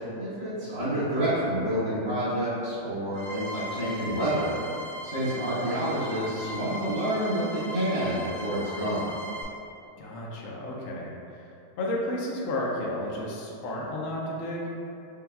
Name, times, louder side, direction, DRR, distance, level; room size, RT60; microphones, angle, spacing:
voice 1, 0.1-4.5 5.0-9.0, right 1 dB, 85° right, -14 dB, 2.4 m, -28 dB
sound 1, 3.1-9.4, equal, 90° left, 1.6 m, -39 dB
voice 2, 10.0-11.4 11.8-14.7, left 1 dB, 70° left, -4 dB, 0.7 m, -32 dB
6.7 x 2.3 x 2.2 m, 2.7 s
omnidirectional pair, 1.9 m